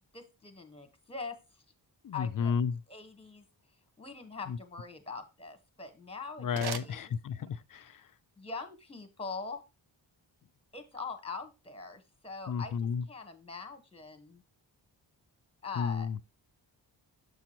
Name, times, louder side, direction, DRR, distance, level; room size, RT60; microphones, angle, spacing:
voice 1, 0.1-1.4 2.1-2.5 2.9-3.4 4.0-7.1 8.4-9.6 10.7-12.7 13.1-14.4 15.6-16.1, left 4 dB, 15° left, 1.2 m, -42 dB
voice 2, 2.0-2.8 4.5-4.6 6.4-8.0 12.5-13.0 15.8-16.2, left 6 dB, 50° left, 0.5 m, -32 dB
sound 1, 5.6-7.8, right 7 dB, 60° right, 0.6 m, -44 dB
6.9 x 5.8 x 2.9 m
wide cardioid pair, 90°, 45 cm